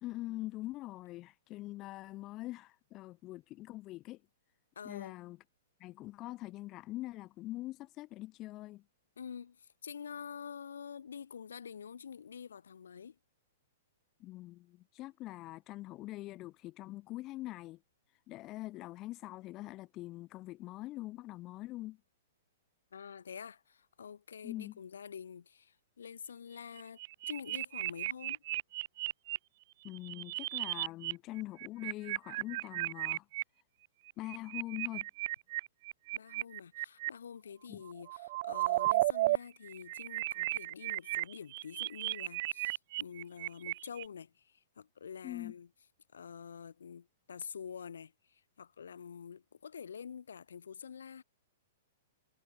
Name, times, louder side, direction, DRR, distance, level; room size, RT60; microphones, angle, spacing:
voice 1, 0.0-4.2 4.8-5.4 5.8-8.8 14.2-17.8 18.3-22.0 24.4-24.7 29.8-33.3 34.2-35.1 37.7-37.8 45.2-45.5, left 17 dB, 35° left, 2.2 m, -43 dB
voice 2, 4.7-5.1 9.2-13.2 22.9-27.0 27.3-28.4 36.1-45.7 46.1-51.2, left 7 dB, 75° left, 4.8 m, -47 dB
sound 1, 26.8-29.4 29.9-31.1 31.4-33.4 34.1-37.1 37.9-39.4 39.7-44.1, right 18 dB, 50° right, 1.1 m, -34 dB
hypercardioid pair, 115°, 0 cm